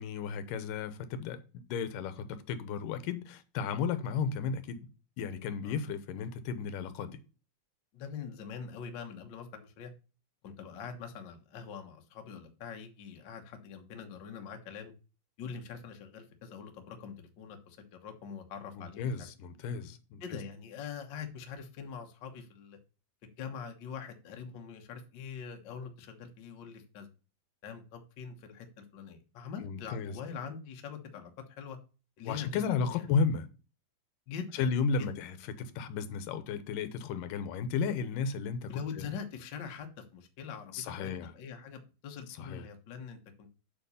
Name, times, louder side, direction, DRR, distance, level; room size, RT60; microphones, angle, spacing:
voice 1, 0.0-1.4 1.7-4.9 5.2-7.2 18.8-20.4 29.6-30.2 32.3-33.5 34.5-39.1 40.7-41.3 42.4-42.7, left 5 dB, 80° left, 2.4 m, -34 dB
voice 2, 7.9-9.9 10.4-14.9 15.4-19.3 20.2-22.8 23.2-27.1 27.6-31.3 31.6-31.8 32.2-32.6 32.9-33.0 34.3-34.7 35.0-35.1 38.7-43.5, left 6 dB, 60° left, 1.2 m, -43 dB
7.9 x 4.1 x 6.9 m
omnidirectional pair, 3.8 m